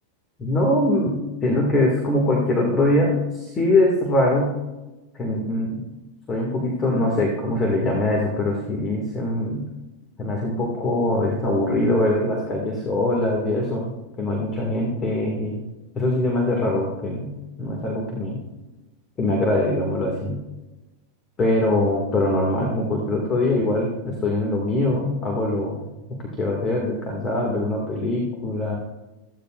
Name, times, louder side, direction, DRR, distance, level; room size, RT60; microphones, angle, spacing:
voice 1, 0.4-1.2 1.4-4.5 5.1-5.8 6.3-9.6 10.2-15.6 15.9-17.3 17.6-18.4 19.2-20.4 21.4-25.8 26.4-28.8, left 1 dB, 25° left, 0 dB, 2.2 m, -22 dB
16.5 x 15.0 x 2.5 m, 1.1 s
supercardioid pair, 135°, 0 cm